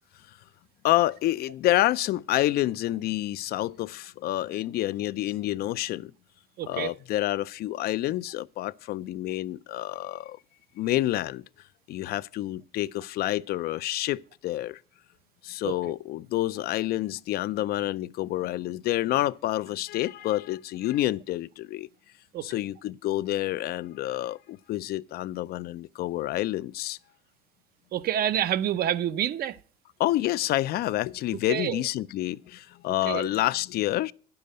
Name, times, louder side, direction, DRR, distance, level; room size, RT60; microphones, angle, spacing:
voice 1, 0.8-6.1 6.7-10.4 10.8-11.4 11.9-14.8 15.4-21.9 22.4-27.0 30.0-34.1, left 15 dB, 65° left, 0.4 m, -28 dB
voice 2, 6.6-6.9 15.6-15.7 22.3-22.4 27.9-29.6 31.5-31.8 33.1-33.3, right 11 dB, 65° right, 0.6 m, -27 dB
10.0 x 6.9 x 6.5 m
cardioid pair, 110°, 17 cm